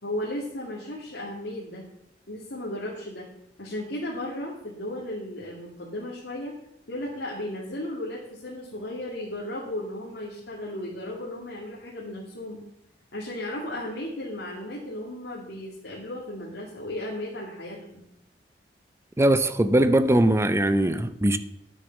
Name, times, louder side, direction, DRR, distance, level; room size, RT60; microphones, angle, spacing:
voice 1, 0.0-1.9 2.3-3.3 3.6-6.5 6.9-12.6 13.1-18.0, left 1 dB, 80° left, 2.4 m, -35 dB
voice 2, 19.2-21.4, right 1 dB, 15° right, 0.5 m, -21 dB
10.5 x 7.1 x 7.1 m
head